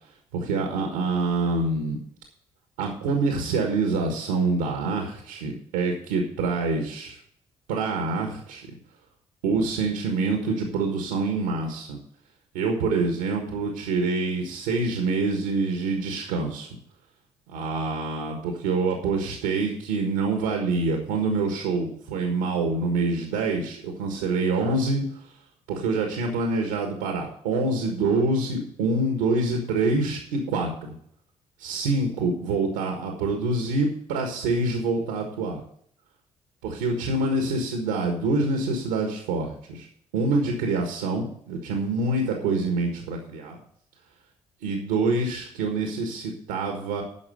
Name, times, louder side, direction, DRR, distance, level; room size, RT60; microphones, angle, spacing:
voice 1, 0.3-2.0 2.8-7.2 7.7-8.7 9.4-12.0 12.5-16.7 17.5-25.3 25.7-30.7 31.6-35.6 36.6-39.9 40.1-43.6 44.6-47.0, right 3 dB, 80° right, 3 dB, 1.5 m, -26 dB
9.8 x 6.0 x 7.8 m, 0.66 s
hypercardioid pair, 45°, 15 cm